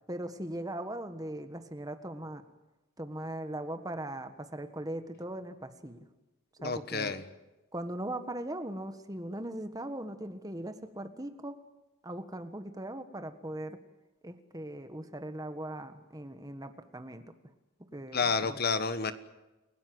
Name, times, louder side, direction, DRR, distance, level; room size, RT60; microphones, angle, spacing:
voice 1, 0.1-2.4 3.0-6.0 6.6-7.2 7.7-11.6 12.0-13.8 14.2-17.2 17.9-18.6, right 1 dB, 15° right, 9 dB, 1.4 m, -39 dB
voice 2, 6.6-7.2 18.1-19.1, left 4 dB, 45° left, 12 dB, 1.3 m, -30 dB
29.5 x 18.0 x 7.9 m, 1.0 s
head